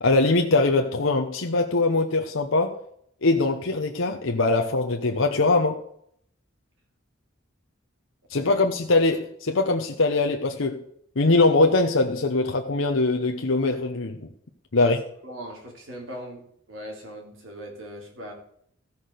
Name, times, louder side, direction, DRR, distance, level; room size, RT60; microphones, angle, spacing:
voice 1, 0.0-2.8 3.2-5.8 8.3-10.8 11.2-14.3 14.7-15.0, left 2 dB, 80° left, 1.0 m, -22 dB
voice 2, 15.2-16.4 16.7-18.3, equal, 85° right, 3.3 m, -39 dB
14.5 x 6.0 x 6.6 m
head